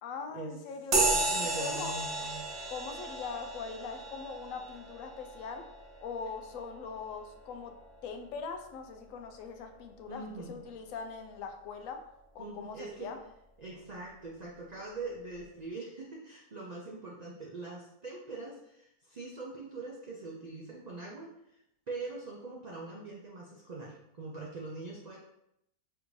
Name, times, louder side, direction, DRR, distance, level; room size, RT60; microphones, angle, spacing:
voice 1, 0.0-1.0 1.4-1.9 2.7-5.7 6.0-7.7 8.0-10.2 10.5-12.0 12.3-13.2, left 5 dB, 70° left, 5 dB, 0.9 m, -41 dB
sound 1, 0.9-8.8, right 3 dB, 55° right, 1.1 m, -34 dB
voice 2, 1.0-2.5 10.1-10.6 12.4-13.1 13.6-21.6 21.9-25.2, right 3 dB, 80° right, -3 dB, 0.3 m, -42 dB
3.4 x 2.6 x 4.6 m, 0.80 s
omnidirectional pair, 1.6 m